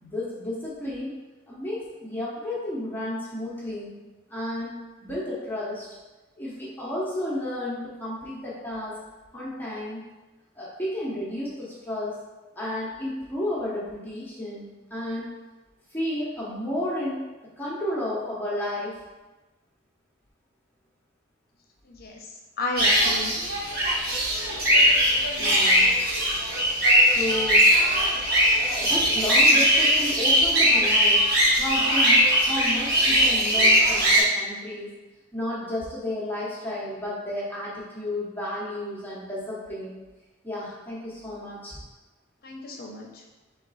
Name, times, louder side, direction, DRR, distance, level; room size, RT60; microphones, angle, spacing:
voice 1, 0.0-1.1 1.5-3.9 4.3-4.7 5.0-5.9 6.4-9.0 9.3-10.0 10.6-12.2 12.5-15.3 15.9-17.3 17.6-19.0 25.4-25.9 27.0-27.6 28.1-28.2 28.6-34.9 35.3-39.9 40.4-41.8, left 1 dB, 10° left, -8 dB, 0.7 m, -32 dB
voice 2, 21.8-22.3 22.6-23.4 42.4-43.2, left 2 dB, 45° left, 0 dB, 0.7 m, -33 dB
sound 1, 22.8-34.2, equal, 50° right, 1.2 m, -20 dB
3.8 x 3.1 x 4.0 m, 1.2 s
head